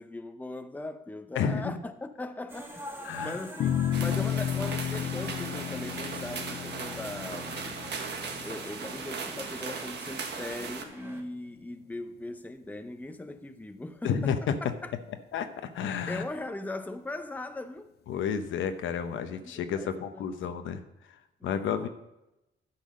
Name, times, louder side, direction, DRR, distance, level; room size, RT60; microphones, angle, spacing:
voice 1, 0.0-7.6 8.4-14.9 16.1-17.9 19.2-20.4 21.4-21.9, left 2 dB, 10° left, 0.7 m, -40 dB
voice 2, 1.3-1.8 3.0-3.4 14.0-14.4 15.3-16.2 18.1-20.8 21.4-21.9, left 7 dB, 75° left, 0.9 m, -31 dB
sound 1, 2.5-11.2, equal, 10° right, 1.6 m, -46 dB
sound 2, 3.6-10.1, left 10 dB, 55° left, 0.4 m, -33 dB
sound 3, 3.9-10.8, right 5 dB, 60° right, 1.4 m, -38 dB
10.5 x 5.7 x 6.4 m
cardioid pair, 90°, 20 cm